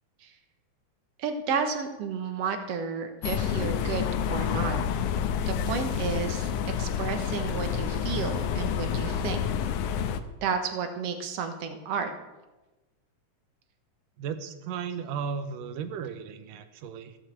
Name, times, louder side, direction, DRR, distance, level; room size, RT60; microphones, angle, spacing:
voice 1, 1.2-4.8 5.5-9.4 10.4-12.1, right 6 dB, 60° right, 7 dB, 2.1 m, -32 dB
sound 1, 3.2-10.2, left 8 dB, 80° left, 2.2 m, -29 dB
voice 2, 14.2-17.2, right 6 dB, 85° right, 10 dB, 2.6 m, -35 dB
15.5 x 7.3 x 7.8 m, 1.1 s
omnidirectional pair, 3.7 m